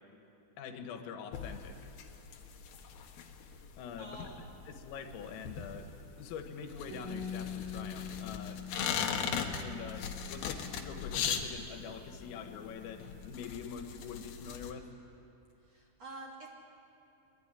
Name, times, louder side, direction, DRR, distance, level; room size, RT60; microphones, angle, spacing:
voice 1, 0.6-1.9 3.8-5.9 6.2-8.6 9.6-14.9, left 7 dB, 80° left, 6 dB, 4.2 m, -45 dB
sound 1, 1.3-14.7, left 7 dB, 65° left, 2.9 m, -39 dB
voice 2, 4.0-4.4 15.7-16.5, right 2 dB, 40° right, -2 dB, 3.0 m, -47 dB
Bass guitar, 6.9-13.2, left 7 dB, 75° right, 6.1 m, -45 dB
23.5 x 23.0 x 9.9 m, 2.8 s
omnidirectional pair, 5.9 m